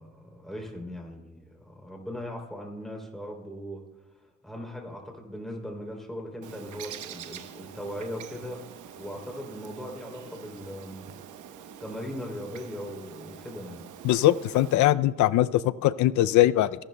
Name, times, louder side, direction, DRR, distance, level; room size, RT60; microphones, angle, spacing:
voice 1, 0.0-3.8 4.4-8.6 8.9-11.1 11.8-13.9, equal, ahead, 0 dB, 3.1 m, -39 dB
Bird, 6.4-14.8, right 8 dB, 75° right, 0.9 m, -45 dB
voice 2, 14.0-16.8, left 14 dB, 75° left, 16 dB, 0.5 m, -21 dB
28.0 x 11.5 x 2.2 m, 1.2 s
cardioid pair, 90°, 30 cm